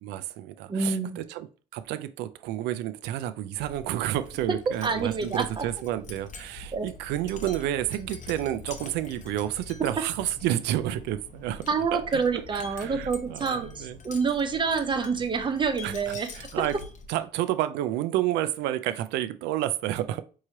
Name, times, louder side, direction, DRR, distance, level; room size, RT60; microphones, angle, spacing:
voice 1, 0.0-12.0 12.3-14.0 15.8-16.8 17.1-20.2, right 13 dB, 90° right, 0.4 m, -30 dB
voice 2, 0.7-1.2 4.7-5.6 6.7-6.9 11.7-16.3, right 5 dB, 30° right, 0.7 m, -27 dB
Wind chime, 3.5-17.2, left 3 dB, 50° left, 0.7 m, -44 dB
4.7 x 3.1 x 2.7 m
cardioid pair, 110°, 17 cm